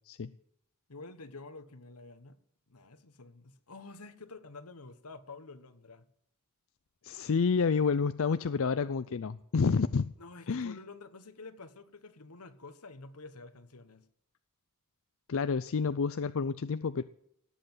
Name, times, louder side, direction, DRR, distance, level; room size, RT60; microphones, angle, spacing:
voice 1, 0.9-2.4 2.7-6.1 10.2-14.0, left 3 dB, 80° left, 1.4 m, -49 dB
voice 2, 7.0-10.1 10.5-10.8 15.3-17.0, left 5 dB, 60° left, 0.5 m, -29 dB
18.0 x 7.8 x 7.9 m
head